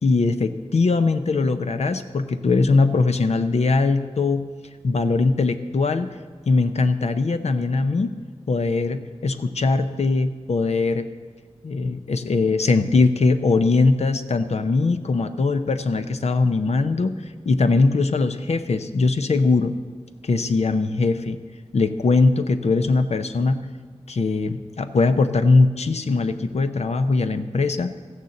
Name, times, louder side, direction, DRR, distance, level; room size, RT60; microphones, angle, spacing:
voice 1, 0.0-4.5 4.8-6.1 6.5-8.1 8.5-11.1 11.6-17.2 17.5-19.8 20.2-21.4 21.7-23.7 24.1-27.9, left 3 dB, 75° left, 9 dB, 0.7 m, -21 dB
14.5 x 6.8 x 7.7 m, 1.5 s
wide cardioid pair, 65°, 11 cm